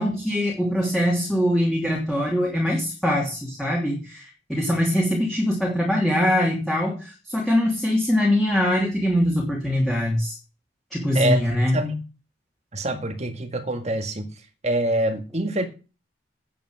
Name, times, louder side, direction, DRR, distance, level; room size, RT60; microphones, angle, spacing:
voice 1, 0.0-10.4 10.9-11.8, equal, ahead, 2.7 m, -23 dB
voice 2, 11.1-11.5 11.7-12.0 12.7-14.3 14.6-15.6, right 1 dB, 35° right, 1.8 m, -25 dB
9.8 x 8.6 x 6.3 m
head